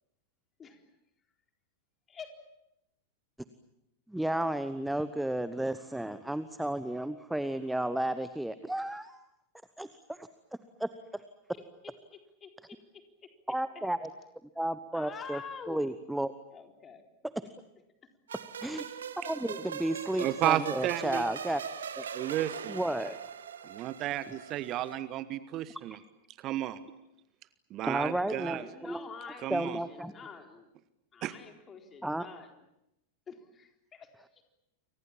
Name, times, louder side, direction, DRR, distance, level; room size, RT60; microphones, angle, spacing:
voice 1, 4.1-9.2 9.8-10.3 10.8-11.2 13.5-14.1 14.6-15.4 15.7-16.3 18.6-18.8 19.2-21.6 22.0-22.1 22.7-23.2 25.9-26.0 27.8-29.1 29.5-30.1 32.0-32.3, right 1 dB, 5° right, 13 dB, 1.0 m, -33 dB
voice 2, 11.8-13.3 14.9-15.8 16.5-17.0 28.5-30.7 31.1-32.5 33.3-34.4, left 6 dB, 20° left, 4 dB, 4.1 m, -47 dB
sound 1, 18.3-24.9, right 7 dB, 65° right, 1.6 m, -41 dB
voice 3, 20.2-21.3 22.1-22.8 23.6-26.0 26.4-26.8 27.7-28.7 29.4-29.8 31.2-31.3, right 13 dB, 35° right, 15 dB, 1.2 m, -32 dB
29.5 x 24.5 x 7.4 m, 0.87 s
figure-of-eight pair, 90°, 0 cm